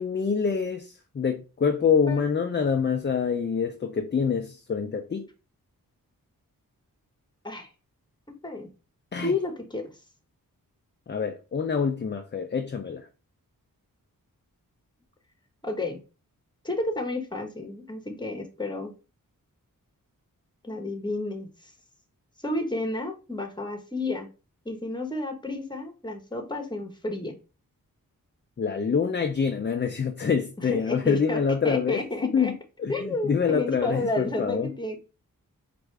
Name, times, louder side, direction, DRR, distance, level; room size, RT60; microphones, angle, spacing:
voice 1, 0.0-5.3 9.1-9.3 11.1-13.1 28.6-32.5 32.8-34.7, left 6 dB, 30° left, 0.4 m, -26 dB
voice 2, 9.2-9.9 15.6-16.0 16.6-18.9 20.6-21.5 22.4-24.3 24.6-27.4 30.6-32.5 32.9-35.0, left 2 dB, 15° left, 1.0 m, -31 dB
4.4 x 2.5 x 3.2 m
wide cardioid pair, 65°, 35 cm